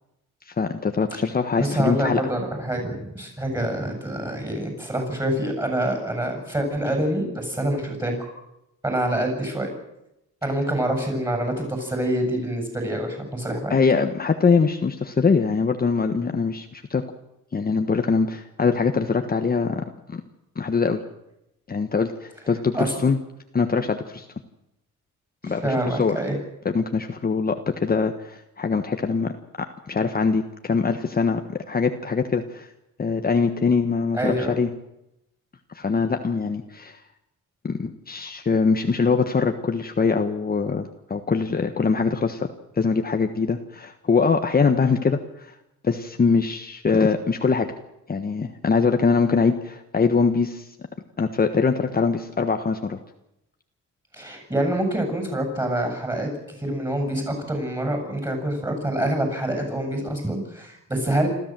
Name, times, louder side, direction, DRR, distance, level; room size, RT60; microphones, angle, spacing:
voice 1, 0.5-2.2 13.7-17.0 17.5-19.8 20.1-20.2 20.5-21.0 21.7-23.2 23.5-24.3 25.4-26.2 26.7-32.7 33.0-34.7 35.7-37.0 37.6-42.5 42.8-45.5 45.8-47.7 48.1-50.7 51.2-53.0, left 5 dB, 30° left, 6 dB, 1.4 m, -23 dB
voice 2, 1.6-8.3 8.8-9.7 10.4-13.8 22.7-23.1 25.4-26.4 34.1-34.5 54.1-56.3 56.6-61.3, right 1 dB, 15° right, 3 dB, 7.7 m, -26 dB
27.0 x 13.5 x 7.7 m, 0.87 s
cardioid pair, 90°, 30 cm